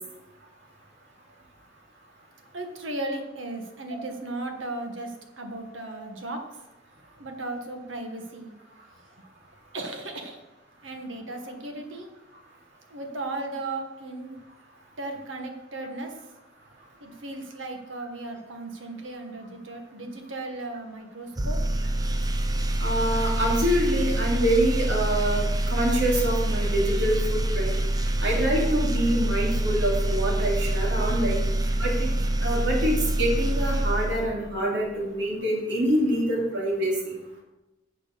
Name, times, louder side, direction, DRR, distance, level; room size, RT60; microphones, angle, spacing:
voice 1, 2.5-6.4 7.2-8.5 9.7-10.4 10.8-12.1 12.9-14.3 15.0-16.1 17.0-21.6, right 2 dB, 80° right, 4 dB, 1.5 m, -36 dB
sound 1, 21.4-34.7, right 1 dB, 20° right, 0.7 m, -26 dB
voice 2, 22.8-27.8 28.2-31.4 31.8-32.1 32.4-37.1, right 1 dB, 65° right, -3 dB, 2.9 m, -26 dB
7.3 x 6.6 x 6.6 m, 1.0 s
head